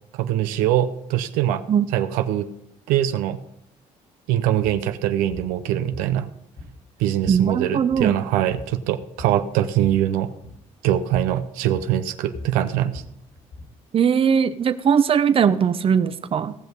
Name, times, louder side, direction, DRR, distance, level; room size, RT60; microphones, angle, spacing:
voice 1, 0.1-1.6 1.9-2.5 2.9-3.4 4.3-6.3 7.0-10.3 10.8-13.0, right 12 dB, 90° right, 9 dB, 0.7 m, -23 dB
sound 1, 4.6-4.8 5.3-5.5 5.9-6.9 7.2-7.5 7.8-8.2 8.5-9.4 9.7-10.0 10.4-10.6 11.1-11.4 11.7-13.8, left 2 dB, 70° left, 3.9 m, -40 dB
voice 2, 7.3-8.1 13.9-16.5, right 7 dB, 40° right, 11 dB, 0.8 m, -19 dB
17.5 x 6.2 x 5.2 m, 0.75 s
supercardioid pair, 85°, 14 cm